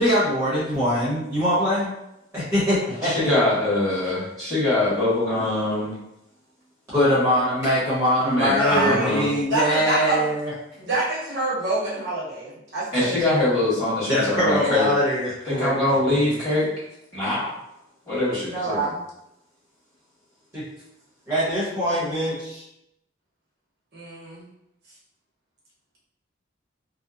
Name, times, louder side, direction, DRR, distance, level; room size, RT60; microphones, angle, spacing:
voice 1, 0.0-1.9 2.3-3.1 6.9-10.5 14.1-15.8 20.5-20.7 21.3-22.6, equal, 15° right, -11 dB, 0.8 m, -22 dB
voice 2, 3.0-5.9 8.2-9.3 12.9-14.9 15.4-16.7 17.1-17.5 18.1-18.9, left 1 dB, 20° left, -11 dB, 1.3 m, -23 dB
voice 3, 8.5-10.2 10.8-13.3 18.5-19.0 23.9-24.4, right 2 dB, 55° right, -7 dB, 0.9 m, -26 dB
2.8 x 2.1 x 2.4 m, 0.84 s
head